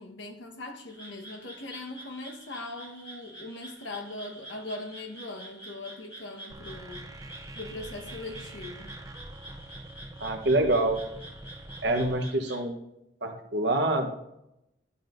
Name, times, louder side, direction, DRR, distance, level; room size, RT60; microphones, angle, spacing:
voice 1, 0.0-7.1 7.5-8.9, left 2 dB, 80° left, 1.2 m, -40 dB
Frog, 0.9-12.6, right 1 dB, 30° left, 2.9 m, -48 dB
sound 1, 6.5-12.1, right 1 dB, 20° right, 0.5 m, -45 dB
voice 2, 10.2-11.0 11.8-12.7 13.2-14.2, right 2 dB, 65° right, 1.1 m, -26 dB
11.0 x 7.5 x 2.6 m
head